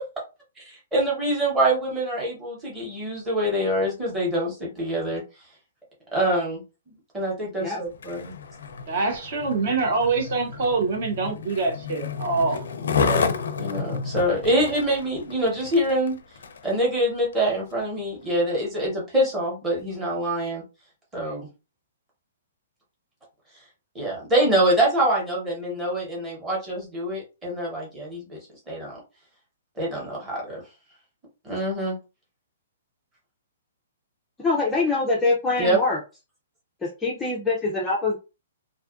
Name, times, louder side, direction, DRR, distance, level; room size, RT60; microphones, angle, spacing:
voice 1, 0.6-5.2 6.1-6.6 7.1-8.3 13.0-13.3 13.6-16.2 16.6-20.6 21.1-21.5 23.9-28.4 28.7-29.0 29.8-30.6 31.4-32.0 35.6-35.8, right 1 dB, 10° right, 0.9 m, -25 dB
Skateboard, 7.9-16.7 17.3-17.5, left 5 dB, 75° left, 0.4 m, -31 dB
voice 2, 8.9-12.7, right 4 dB, 40° right, 0.6 m, -25 dB
voice 3, 34.4-36.0 36.8-38.2, left 3 dB, 5° left, 0.4 m, -24 dB
2.5 x 2.4 x 2.4 m
hypercardioid pair, 175°, 0 cm